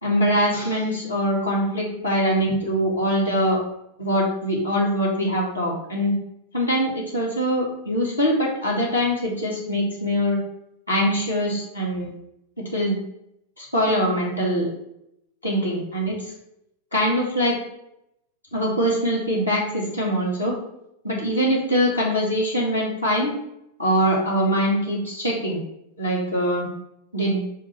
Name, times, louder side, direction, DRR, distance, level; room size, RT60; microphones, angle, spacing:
voice 1, 0.0-3.6 4.0-6.2 6.5-10.4 10.9-12.1 12.6-13.0 13.6-14.7 15.4-16.3 16.9-17.6 18.5-20.6 21.0-23.3 23.8-25.6 26.0-26.7 27.1-27.4, equal, 85° left, -4 dB, 2.1 m, -23 dB
5.0 x 3.4 x 5.6 m, 0.78 s
figure-of-eight pair, 90°, 0 cm